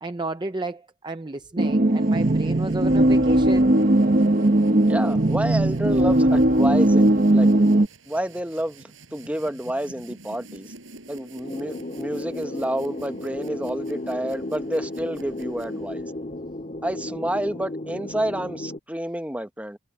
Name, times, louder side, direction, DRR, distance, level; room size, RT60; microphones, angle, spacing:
voice 1, 0.0-3.7, right 2 dB, 20° right, 0.6 m, -32 dB
sound 1, 1.6-7.9, right 1 dB, 45° right, 1.0 m, -18 dB
sound 2, 1.9-16.2, right 3 dB, 80° right, 7.7 m, -49 dB
voice 2, 4.9-7.5 8.1-10.7 11.1-16.1 16.8-19.8, right 1 dB, 5° right, 1.1 m, -29 dB
sound 3, 11.4-18.8, left 1 dB, 35° left, 2.7 m, -34 dB
head